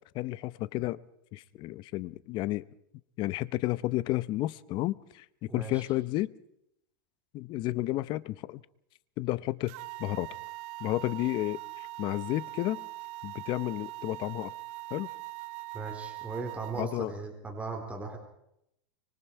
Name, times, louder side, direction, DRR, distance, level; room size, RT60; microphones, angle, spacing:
voice 1, 0.1-1.0 1.3-2.6 3.2-6.3 7.3-8.6 9.2-10.3 10.8-12.8 13.2-14.5 14.9-15.1 16.8-17.1, left 17 dB, 40° left, 19 dB, 0.8 m, -32 dB
voice 2, 5.5-5.8 15.7-18.2, right 4 dB, 10° right, 2 dB, 3.9 m, -38 dB
sound 1, 9.7-16.9, right 20 dB, 50° right, 0.9 m, -42 dB
25.5 x 23.5 x 4.7 m, 0.77 s
supercardioid pair, 140°, 12 cm